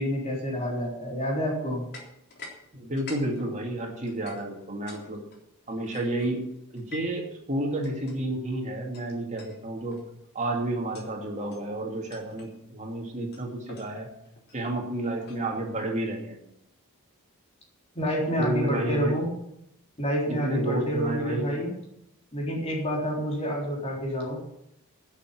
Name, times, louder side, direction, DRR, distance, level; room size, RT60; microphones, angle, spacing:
voice 1, 0.0-1.8 17.9-19.3 20.0-21.7 22.3-24.4, equal, 30° left, -2 dB, 3.8 m, -28 dB
sound 1, 1.9-2.6 2.8-5.0 5.3-7.2 7.8-8.2 8.9-9.0 9.4-9.6 9.9-10.2 10.8-11.2 11.5-11.7 12.1-12.5 13.3-15.8, left 3 dB, 50° left, 3.5 m, -47 dB
voice 2, 2.7-5.2 5.7-6.4 6.7-10.0 10.3-14.1 14.5-16.4 18.4-19.1 20.3-21.6, right 1 dB, 35° right, 1 dB, 2.5 m, -31 dB
11.0 x 7.2 x 9.7 m, 0.78 s
head